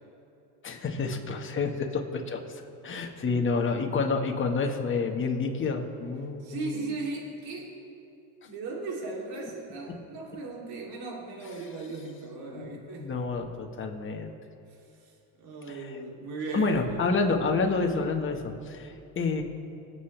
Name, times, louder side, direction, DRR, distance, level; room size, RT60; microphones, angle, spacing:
voice 1, 0.6-6.9 12.5-14.3 15.7-15.9 16.5-19.4, left 4 dB, 30° left, 2 dB, 1.6 m, -29 dB
voice 2, 6.4-7.7 8.4-13.1 14.7-15.1 15.4-17.0, right 3 dB, 60° right, -2 dB, 3.3 m, -37 dB
24.5 x 8.3 x 3.4 m, 2.7 s
supercardioid pair, 105°, 41 cm